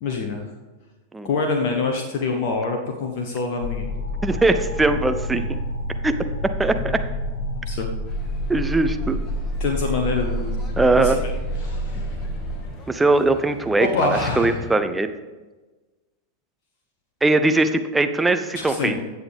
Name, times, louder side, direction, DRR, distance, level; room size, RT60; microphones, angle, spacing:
voice 1, 0.0-0.5 1.2-3.9 7.7-7.9 9.6-10.6 11.0-11.2 11.6-12.1 13.8-14.7 18.5-19.0, left 4 dB, 45° left, 3 dB, 1.0 m, -25 dB
sound 1, 3.6-12.7, equal, 65° left, 3.8 m, -28 dB
voice 2, 4.2-5.6 6.0-6.1 6.4-7.0 8.5-9.2 10.8-11.2 12.9-15.1 17.2-19.0, right 2 dB, 10° right, 9 dB, 0.6 m, -20 dB
sound 2, 8.0-14.7, equal, 25° left, 1.7 m, -42 dB
16.0 x 7.2 x 3.4 m, 1.2 s
figure-of-eight pair, 90°, 0 cm